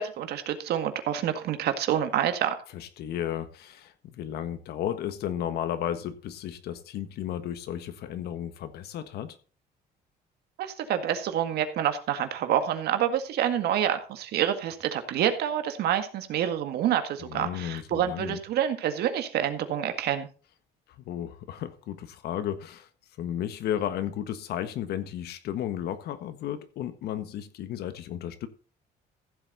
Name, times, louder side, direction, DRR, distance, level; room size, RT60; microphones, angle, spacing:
voice 1, 0.0-2.5 10.6-20.3, right 10 dB, 70° right, 1.9 m, -27 dB
voice 2, 2.7-9.4 17.2-18.4 21.1-22.9 23.2-28.5, left 10 dB, 75° left, 1.5 m, -33 dB
15.0 x 7.9 x 4.1 m
cardioid pair, 110°, 17 cm